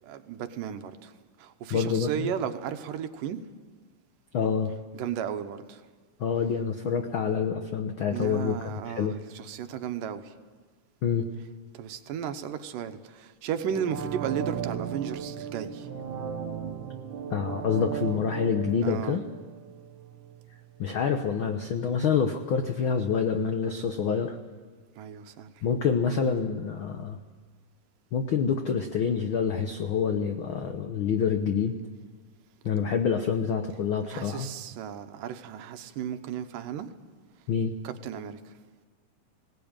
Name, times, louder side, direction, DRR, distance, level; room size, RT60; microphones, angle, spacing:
voice 1, 0.0-3.4 4.9-5.9 8.1-10.3 11.4-11.5 11.7-15.9 18.8-19.2 25.0-25.6 33.7-33.8 34.1-36.9 37.8-38.6, right 8 dB, 85° right, 2.7 m, -35 dB
voice 2, 1.7-2.3 4.3-4.7 6.2-9.2 11.0-11.3 17.3-19.2 20.8-24.4 25.6-27.2 28.1-31.8 32.6-34.5 37.5-37.7, left 6 dB, 80° left, 1.1 m, -27 dB
sound 1, 13.6-20.4 20.8-20.9, right 8 dB, 70° right, 3.0 m, -36 dB
20.5 x 18.0 x 8.9 m
omnidirectional pair, 3.7 m